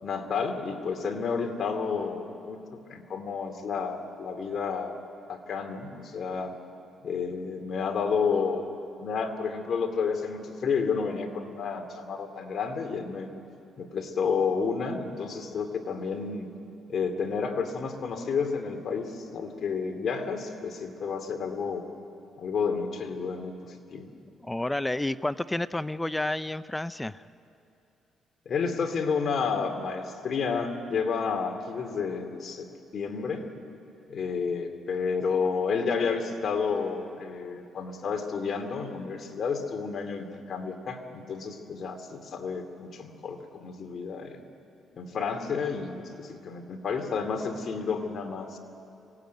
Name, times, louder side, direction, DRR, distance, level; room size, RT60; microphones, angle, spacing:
voice 1, 0.0-5.0 5.3-6.5 7.0-8.6 9.0-13.3 13.8-16.5 16.9-21.8 22.4-23.5 23.9-24.1 28.5-32.7 32.9-33.5 34.1-44.4 44.9-48.6, left 5 dB, 55° left, 6 dB, 2.6 m, -30 dB
voice 2, 24.4-27.2, left 1 dB, 10° left, 15 dB, 0.5 m, -30 dB
24.5 x 18.0 x 9.4 m, 2.7 s
cardioid pair, 90°, 0 cm